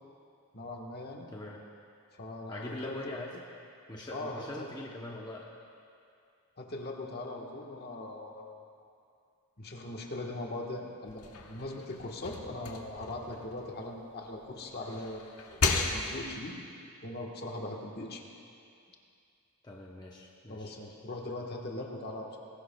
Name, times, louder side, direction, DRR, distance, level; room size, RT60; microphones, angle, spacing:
voice 1, 0.5-1.3 2.2-3.2 4.1-4.7 6.6-8.5 9.6-11.2 11.5-15.5 15.8-16.5 17.0-18.3 20.5-22.4, left 2 dB, 45° left, 1 dB, 1.4 m, -40 dB
voice 2, 1.3-1.6 2.5-3.4 3.9-5.4 19.6-20.7, left 1 dB, 20° left, -2 dB, 0.8 m, -42 dB
sound 1, 11.1-14.3 14.7-16.5, left 4 dB, 75° left, 1.2 m, -35 dB
21.0 x 17.0 x 2.3 m, 2.5 s
head